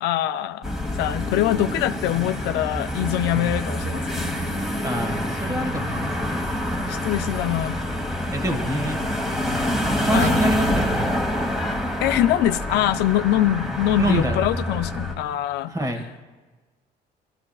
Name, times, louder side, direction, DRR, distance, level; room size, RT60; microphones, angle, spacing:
voice 1, 0.0-4.4 6.9-7.8 10.1-10.4 12.0-15.7, left 13 dB, 80° left, 11 dB, 0.4 m, -23 dB
sound 1, 0.6-15.1, left 1 dB, ahead, 1.6 m, -26 dB
voice 2, 4.8-6.5 8.3-9.0 10.0-11.1 13.9-14.4 15.7-16.1, right 1 dB, 20° right, 5 dB, 1.5 m, -26 dB
20.0 x 13.0 x 2.4 m, 1.3 s
cardioid pair, 110°, 17 cm